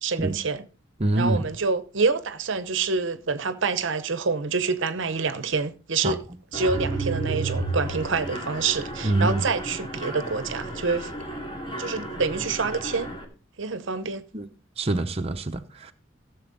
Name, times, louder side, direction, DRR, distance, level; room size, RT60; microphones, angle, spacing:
voice 1, 0.0-0.6 1.2-6.2 6.5-11.1 11.8-13.1 13.6-14.2, right 4 dB, 65° right, 0.8 m, -27 dB
voice 2, 1.0-1.4 6.0-6.1 9.0-9.4 14.3-14.5 14.8-15.9, right 2 dB, 30° right, 0.8 m, -25 dB
Mechanisms, 6.5-13.2, right 2 dB, 25° left, 2.3 m, -32 dB
16.0 x 7.1 x 4.0 m
head